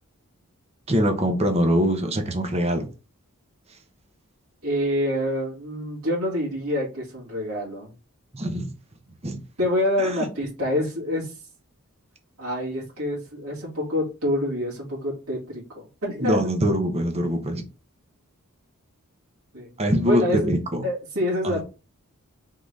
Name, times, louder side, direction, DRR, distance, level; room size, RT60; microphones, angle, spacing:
voice 1, 0.9-2.9 8.3-8.7 9.2-9.4 10.0-10.1 16.2-17.6 19.8-20.8 21.4-21.6, equal, 30° right, 0.8 m, -23 dB
voice 2, 4.6-7.9 9.6-11.3 12.4-16.4 19.5-19.7 20.1-20.5 20.8-21.6, left 1 dB, 80° right, 1.9 m, -26 dB
3.8 x 3.8 x 3.2 m
head